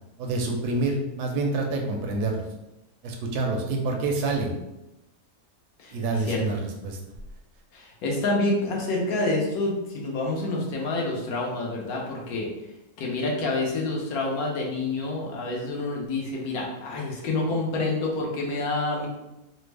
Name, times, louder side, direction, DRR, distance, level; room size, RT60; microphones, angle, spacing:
voice 1, 0.2-2.4 3.0-4.5 5.9-7.0, right 3 dB, 90° right, 2 dB, 1.1 m, -27 dB
voice 2, 5.8-6.4 7.7-12.5 13.0-19.1, left 2 dB, 70° left, -2 dB, 1.2 m, -28 dB
3.3 x 2.1 x 3.2 m, 0.94 s
omnidirectional pair, 1.6 m